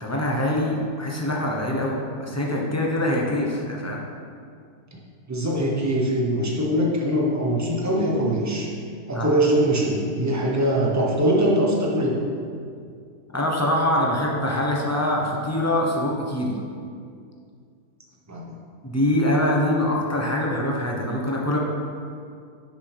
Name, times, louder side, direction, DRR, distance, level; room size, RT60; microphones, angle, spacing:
voice 1, 0.0-4.0 9.1-9.3 13.3-16.6 18.8-21.6, left 1 dB, 15° left, -2 dB, 0.8 m, -24 dB
voice 2, 5.3-8.7 9.1-12.2 18.3-18.6, right 1 dB, 15° right, -3 dB, 0.9 m, -22 dB
10.5 x 5.9 x 3.5 m, 2.3 s
omnidirectional pair, 1.7 m